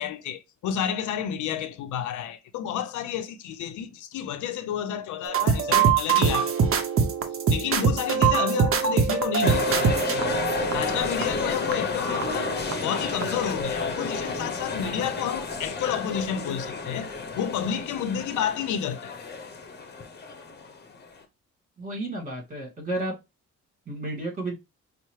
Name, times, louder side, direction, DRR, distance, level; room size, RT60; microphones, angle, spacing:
voice 1, 0.0-6.7 7.5-9.9 10.7-12.6 12.8-19.1, left 9 dB, 75° left, 0.5 m, -30 dB
sound 1, 5.3-13.0 13.2-13.6, right 6 dB, 45° right, 0.7 m, -24 dB
sound 2, 9.4-21.2, left 4 dB, 35° left, 0.8 m, -31 dB
voice 2, 21.8-23.1 23.9-24.5, right 2 dB, 25° right, 2.1 m, -32 dB
5.4 x 2.1 x 3.1 m
cardioid pair, 90°, 30 cm